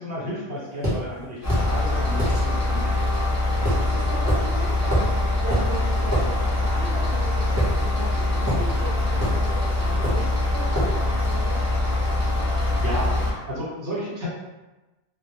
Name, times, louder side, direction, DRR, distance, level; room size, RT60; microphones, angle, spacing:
voice 1, 0.0-3.1 12.6-14.3, equal, 55° right, -8 dB, 1.2 m, -33 dB
sound 1, 0.8-1.0 1.5-1.7 2.2-2.4 3.7-3.9 4.3-4.4 4.9-5.1 5.5-5.7 6.1-6.3 7.6-8.1 8.5-8.7 9.2-9.4 10.0-10.3 10.8-11.0, right 1 dB, 15° right, 0.8 m, -25 dB
sound 2, 1.4-13.3, left 2 dB, 30° left, 0.3 m, -23 dB
voice 2, 3.6-5.1 5.4-11.6, right 2 dB, 85° right, -6 dB, 0.8 m, -37 dB
2.1 x 2.1 x 2.9 m, 1.1 s
omnidirectional pair, 1.0 m